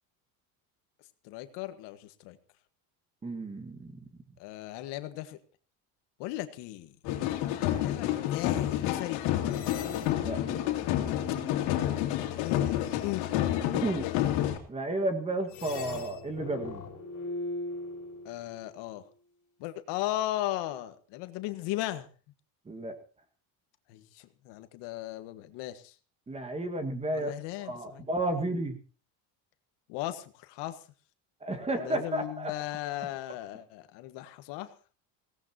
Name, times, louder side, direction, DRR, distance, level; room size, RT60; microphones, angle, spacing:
voice 1, 1.2-2.4 4.4-5.4 6.2-7.0 7.7-9.2 11.4-13.2 14.0-14.2 18.3-19.0 19.6-22.1 23.9-26.0 27.1-28.1 29.9-30.8 31.8-34.7, left 15 dB, 70° left, 9 dB, 1.7 m, -37 dB
voice 2, 3.2-3.9 10.2-10.4 13.7-14.1 14.7-16.8 22.7-23.0 26.3-27.3 27.7-28.8 31.4-32.5, right 2 dB, 15° right, 7 dB, 1.8 m, -32 dB
sound 1, 7.0-14.6, left 12 dB, 90° left, 2.8 m, -29 dB
sound 2, 9.5-12.7 15.5-18.7, left 3 dB, 40° left, 4.9 m, -40 dB
22.0 x 17.5 x 3.0 m, 0.37 s
cardioid pair, 150°, 44 cm